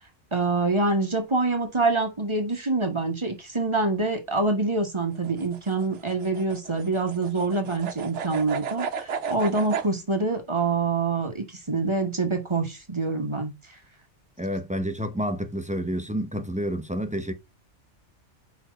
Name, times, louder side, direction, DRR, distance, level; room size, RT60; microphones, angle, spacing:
voice 1, 0.3-13.5, right 3 dB, 25° right, 1.1 m, -26 dB
sound 1, 5.1-9.9, right 7 dB, 70° right, 1.1 m, -33 dB
voice 2, 14.4-17.3, equal, 10° right, 0.5 m, -29 dB
4.7 x 4.4 x 5.1 m
omnidirectional pair, 1.3 m